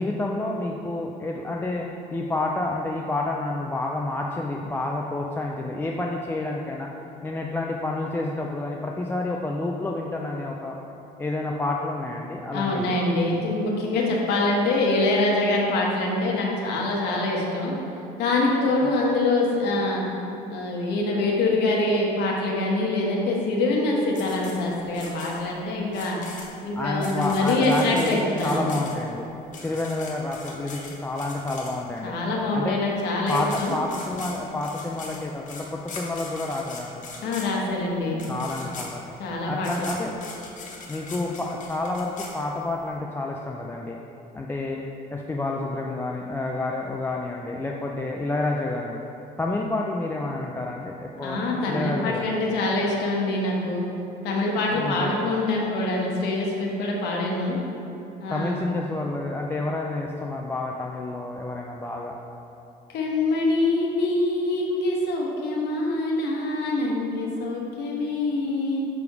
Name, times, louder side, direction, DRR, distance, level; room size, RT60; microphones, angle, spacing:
voice 1, 0.0-1.9 2.1-6.9 7.2-10.8 11.2-13.0 26.8-29.3 29.6-32.1 32.5-32.8 33.3-37.0 38.3-39.0 39.5-40.2 40.9-44.0 44.3-44.9 45.1-49.0 49.4-52.3 54.7-55.1 58.3-62.2, left 2 dB, 15° left, -1 dB, 0.3 m, -29 dB
voice 2, 12.5-17.7 18.2-20.0 20.5-26.2 26.6-28.8 32.0-33.7 37.2-38.2 39.2-39.9 51.2-53.8 54.2-57.6 58.2-58.6 62.9-68.9, left 2 dB, 80° left, -2 dB, 1.2 m, -25 dB
sound 1, 24.1-32.1 32.9-33.0 33.2-42.9, left 4 dB, 50° left, 1.2 m, -41 dB
6.9 x 3.5 x 4.6 m, 2.9 s
cardioid pair, 110°, 17 cm